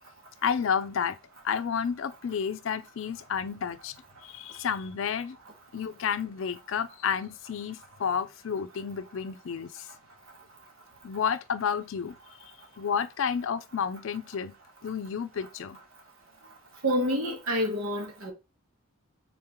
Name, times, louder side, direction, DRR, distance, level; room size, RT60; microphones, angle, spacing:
voice 1, 0.4-1.2 1.4-3.9 4.2-5.4 5.7-9.9 11.0-12.1 12.8-14.5 14.8-15.8, left 7 dB, 70° left, 0.4 m, -31 dB
voice 2, 16.8-18.3, equal, 80° right, 1.3 m, -28 dB
3.8 x 3.6 x 3.0 m
head